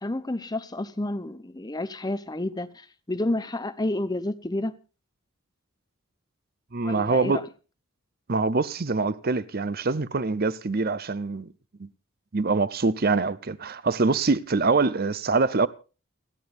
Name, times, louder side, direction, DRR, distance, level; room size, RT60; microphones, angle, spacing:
voice 1, 0.0-4.8 6.8-7.4, left 1 dB, 20° left, 0.9 m, -30 dB
voice 2, 6.7-7.4 8.3-11.5 11.8-11.9 12.3-15.7, right 3 dB, 45° right, 0.7 m, -24 dB
29.5 x 10.0 x 2.6 m
head